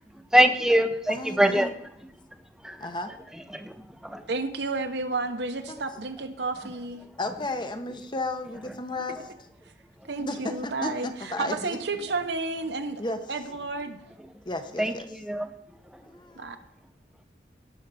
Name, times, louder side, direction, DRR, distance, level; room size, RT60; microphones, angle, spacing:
voice 1, 0.3-1.7 2.6-2.7 3.5-3.6 4.0-4.2 14.8-14.9 15.3-15.5, equal, 5° right, 8 dB, 0.7 m, -22 dB
voice 2, 1.1-1.7 2.8-3.1 5.7-5.8 7.2-9.2 10.2-11.8 13.0-13.2 14.5-15.1 16.0-16.4, left 2 dB, 25° left, 8 dB, 0.9 m, -33 dB
voice 3, 4.3-7.0 10.0-13.0 13.3-14.0 16.4-16.6, right 3 dB, 65° right, 7 dB, 1.0 m, -31 dB
17.5 x 6.5 x 4.2 m, 0.80 s
head